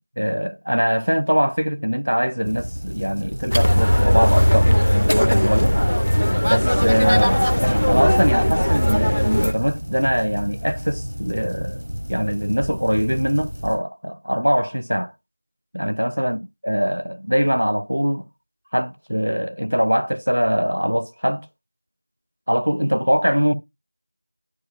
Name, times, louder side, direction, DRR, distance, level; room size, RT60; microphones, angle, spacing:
voice 1, 0.2-5.7 6.4-11.8 12.1-15.1 15.7-16.4 16.6-18.3 18.7-21.5 22.5-23.5, equal, 45° right, 0.5 m, -22 dB
sound 1, 2.4-13.8, equal, 80° right, 3.6 m, -32 dB
sound 2, 3.5-9.5, equal, 35° left, 0.5 m, -18 dB
11.0 x 5.0 x 2.3 m
figure-of-eight pair, 180°, 0 cm